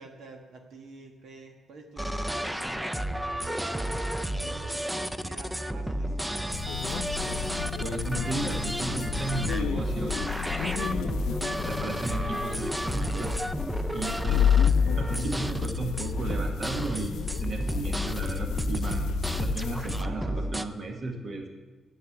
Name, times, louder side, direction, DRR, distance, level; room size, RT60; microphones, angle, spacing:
voice 1, 0.0-6.8 19.9-20.8, right 3 dB, 75° right, 2 dB, 1.4 m, -49 dB
sound 1, 2.0-20.7, right 1 dB, 5° right, 0.5 m, -32 dB
sound 2, 6.5-20.0, left 9 dB, 90° left, 0.5 m, -31 dB
voice 2, 7.8-11.2 11.6-13.4 13.9-14.5 15.0-21.5, right 2 dB, 45° right, 3 dB, 1.6 m, -35 dB
9.4 x 7.0 x 7.9 m, 1.2 s
cardioid pair, 115°, 0 cm